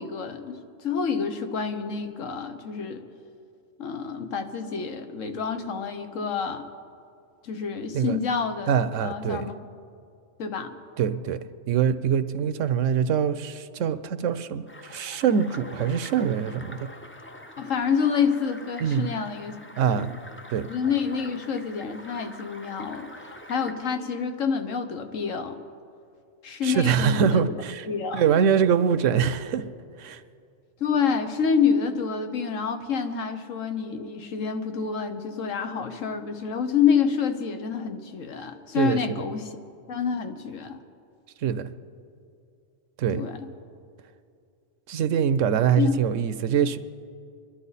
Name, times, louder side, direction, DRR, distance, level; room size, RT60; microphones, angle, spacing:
voice 1, 0.0-3.0 3.8-6.6 7.4-8.7 9.0-9.5 10.4-10.7 17.6-19.6 19.9-20.1 20.7-23.1 23.5-25.6 26.4-28.2 30.8-39.6 39.9-40.8 43.1-43.5 45.8-45.9, left 6 dB, 85° left, 7 dB, 1.4 m, -28 dB
voice 2, 8.7-9.5 11.0-11.4 11.7-16.8 18.8-19.1 19.8-20.1 20.5-20.7 26.6-27.9 28.1-29.6 30.0-30.2 38.7-39.2 41.4-41.7 43.0-43.3 44.9-46.8, right 7 dB, 80° right, 13 dB, 1.0 m, -24 dB
sound 1, 14.7-23.7, left 1 dB, 15° left, 0.5 m, -45 dB
26.5 x 11.5 x 4.1 m, 2.5 s
omnidirectional pair, 1.3 m